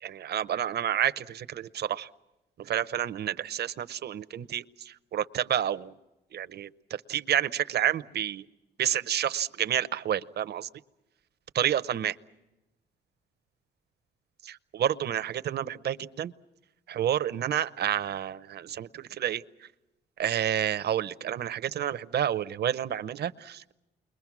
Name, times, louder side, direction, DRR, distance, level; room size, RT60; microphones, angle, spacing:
voice 1, 0.0-2.1 2.6-5.9 6.3-8.4 8.8-10.7 11.5-12.2 14.4-16.3 16.9-19.4 20.2-23.7, right 10 dB, 55° right, 13 dB, 0.7 m, -29 dB
29.5 x 22.0 x 6.1 m, 0.99 s
cardioid pair, 90°, 20 cm